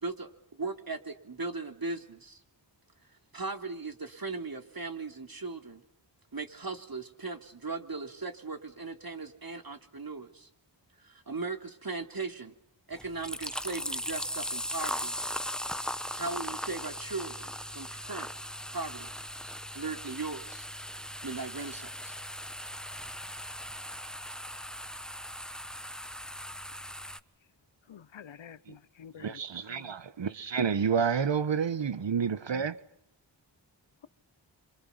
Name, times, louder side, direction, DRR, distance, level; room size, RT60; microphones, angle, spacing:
voice 1, 0.0-2.4 3.3-5.8 6.3-10.5 11.0-12.5 12.9-15.1 16.2-18.3 18.7-19.1 19.7-20.6 21.2-22.1, right 3 dB, 50° right, 3.4 m, -38 dB
sound 1, 12.9-27.2, equal, ahead, 1.3 m, -38 dB
voice 2, 27.9-29.4 29.7-29.9, left 8 dB, 90° left, 1.0 m, -49 dB
voice 3, 29.2-32.8, right 6 dB, 75° right, 1.3 m, -29 dB
28.5 x 26.5 x 5.8 m
cardioid pair, 40°, 44 cm